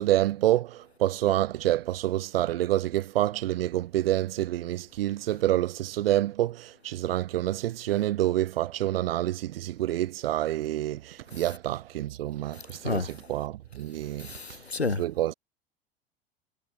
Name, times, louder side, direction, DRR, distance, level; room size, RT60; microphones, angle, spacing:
voice 1, 0.0-14.4 14.9-15.3, right 14 dB, 65° right, 7.0 m, -27 dB
voice 2, 14.3-15.0, left 4 dB, 90° left, 2.6 m, -29 dB
figure-of-eight pair, 85°, 31 cm